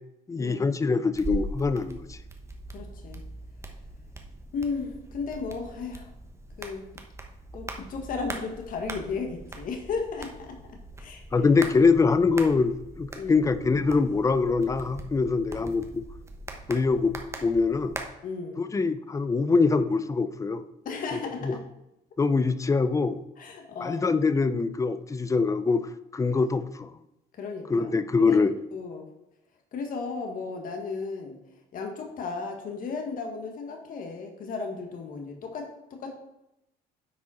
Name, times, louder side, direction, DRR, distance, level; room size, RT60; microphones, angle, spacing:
voice 1, 0.3-2.2 11.3-16.0 16.7-17.1 17.4-17.9 18.6-20.6 21.4-21.5 22.2-23.2 23.8-25.9 26.1-26.9 27.7-28.5, left 4 dB, 20° left, 13 dB, 0.5 m, -24 dB
sound 1, 1.1-18.0, right 2 dB, 15° right, 1.1 m, -41 dB
voice 2, 2.7-3.2 4.5-6.1 6.6-6.8 7.5-11.2 13.2-13.5 18.2-18.6 20.9-21.6 23.4-24.2 27.4-27.9 28.2-28.4 28.7-29.0 29.7-31.4 31.7-36.1, left 4 dB, 55° left, 2 dB, 1.7 m, -35 dB
9.5 x 5.1 x 4.3 m, 0.87 s
cardioid pair, 110°, 17 cm